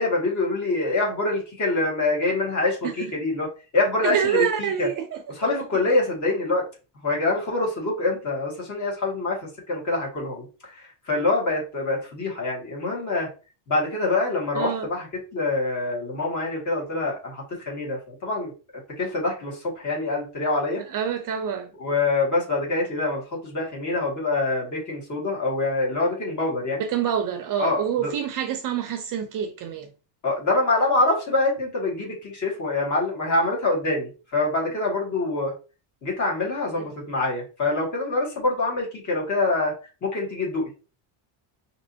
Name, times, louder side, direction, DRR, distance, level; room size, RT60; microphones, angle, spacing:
voice 1, 0.0-3.5 3.7-4.9 5.4-6.6 7.0-13.3 13.7-15.1 15.3-18.5 19.0-20.8 21.8-26.8 27.6-28.1 30.2-35.5 36.0-39.7 40.0-40.7, left 2 dB, 35° left, 2.0 m, -25 dB
voice 2, 4.0-5.5 14.5-14.9 20.9-21.7 26.8-29.9 36.7-36.8, right 9 dB, 40° right, 0.6 m, -27 dB
5.1 x 2.9 x 2.7 m
cardioid pair, 145°, 49 cm